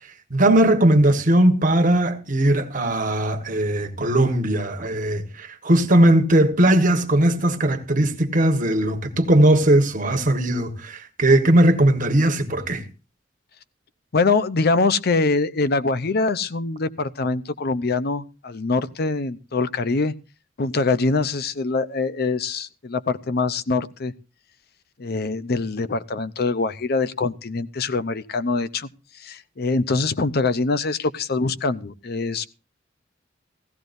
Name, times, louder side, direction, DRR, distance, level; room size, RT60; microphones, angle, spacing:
voice 1, 0.3-12.8, right 1 dB, 45° right, 1.5 m, -19 dB
voice 2, 14.1-20.1 20.6-24.1 25.0-28.9 29.2-32.5, left 3 dB, 55° left, 0.6 m, -24 dB
16.5 x 15.5 x 2.6 m
head